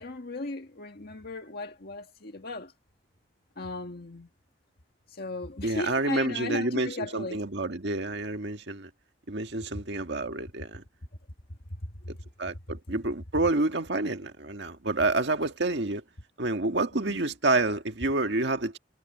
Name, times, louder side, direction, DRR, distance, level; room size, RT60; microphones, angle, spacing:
voice 1, 0.0-2.7 3.6-4.3 5.1-7.4 11.8-12.1 17.1-17.2, left 2 dB, 60° left, 1.8 m, -37 dB
voice 2, 5.6-8.9 9.3-10.8 12.4-16.0 16.4-18.8, right 2 dB, 65° right, 1.8 m, -28 dB
head